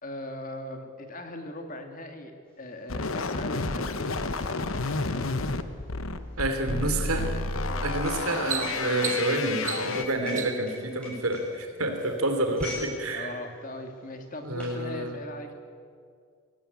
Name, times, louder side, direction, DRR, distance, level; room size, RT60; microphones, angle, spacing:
voice 1, 0.0-4.2 7.7-7.9 13.1-15.5, left 1 dB, 40° left, 5 dB, 2.1 m, -39 dB
sound 1, 2.6-2.7 3.0-12.9 13.2-13.5 14.1-14.8, left 2 dB, 5° left, 7.6 m, -43 dB
sound 2, 2.9-10.1, left 3 dB, 70° left, 1.1 m, -30 dB
voice 2, 6.4-7.3 7.8-13.3 14.4-15.2, right 1 dB, 85° right, 6 dB, 3.3 m, -29 dB
sound 3, 7.5-7.8 8.2-10.8 11.6-12.1 12.5-12.7, right 8 dB, 35° right, 0.9 m, -35 dB
24.0 x 17.0 x 8.5 m, 2.2 s
head